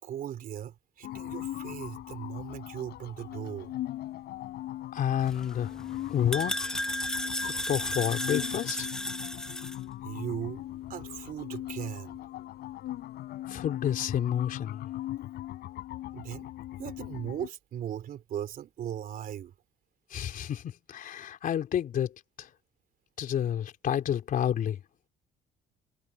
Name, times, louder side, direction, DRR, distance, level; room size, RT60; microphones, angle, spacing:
voice 1, 0.0-3.7 10.0-10.6 10.9-12.2 16.1-16.5 16.8-19.5, right 10 dB, 55° right, 3.6 m, -38 dB
sound 1, 1.0-17.5, left 14 dB, 75° left, 4.0 m, -39 dB
voice 2, 4.9-5.7 6.1-6.6 7.4-8.9 13.5-14.9 20.1-22.1 22.4-22.5 23.2-24.8, left 9 dB, 55° left, 3.6 m, -29 dB
sound 2, 5.2-9.8, left 1 dB, 5° left, 0.9 m, -34 dB
cardioid pair, 110°, 17 cm